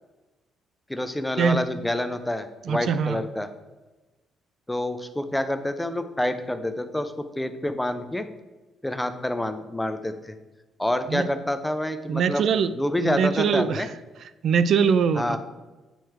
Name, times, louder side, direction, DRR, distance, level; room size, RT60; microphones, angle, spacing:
voice 1, 0.9-3.5 4.7-8.3 8.8-10.4 10.8-12.5 12.7-13.9 15.2-15.4, left 1 dB, 10° left, 0.6 m, -27 dB
voice 2, 2.7-3.2 11.1-11.3 12.1-12.7 13.0-13.8 14.4-15.4, right 6 dB, 65° right, 0.4 m, -22 dB
9.1 x 3.1 x 4.5 m
cardioid pair, 90°, 0 cm